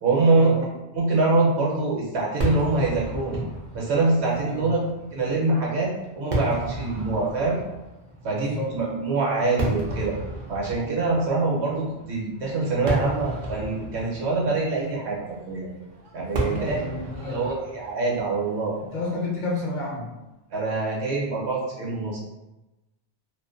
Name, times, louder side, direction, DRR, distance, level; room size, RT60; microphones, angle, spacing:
voice 1, 0.0-3.4 3.7-4.8 5.1-5.9 6.2-7.6 8.2-10.1 10.5-15.7 16.1-16.8 17.2-18.7 20.5-22.2, right 3 dB, 70° right, -4 dB, 1.0 m, -24 dB
Fireworks, 2.4-19.7, right 1 dB, 50° right, 0.6 m, -34 dB
voice 2, 4.5-4.8 8.4-8.7 16.4-17.5 18.9-20.1, left 2 dB, 50° left, -4 dB, 0.7 m, -30 dB
2.5 x 2.2 x 2.4 m, 1.0 s
omnidirectional pair, 1.2 m